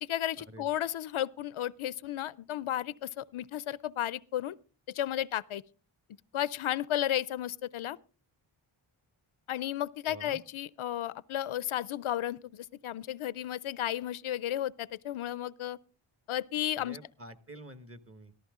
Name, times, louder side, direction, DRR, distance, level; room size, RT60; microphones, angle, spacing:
voice 1, 0.0-4.6 4.9-5.6 6.3-8.0 9.5-15.8 16.3-17.0, left 12 dB, 75° left, 0.5 m, -33 dB
voice 2, 10.1-10.4 16.8-18.3, right 1 dB, 25° right, 1.3 m, -48 dB
14.5 x 14.0 x 3.6 m
wide cardioid pair, 60°, 49 cm